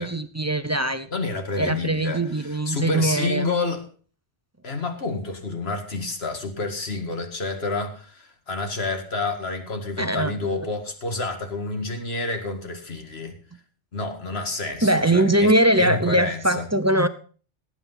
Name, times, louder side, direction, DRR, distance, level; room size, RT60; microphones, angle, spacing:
voice 1, 0.0-1.1 1.6-3.5 10.0-10.6 14.8-17.1, right 1 dB, 20° right, 11 dB, 0.5 m, -21 dB
voice 2, 1.1-3.9 4.6-13.3 13.9-15.5 15.8-16.7, left 3 dB, 60° left, 5 dB, 2.2 m, -29 dB
18.0 x 8.7 x 4.0 m, 0.40 s
omnidirectional pair, 1.2 m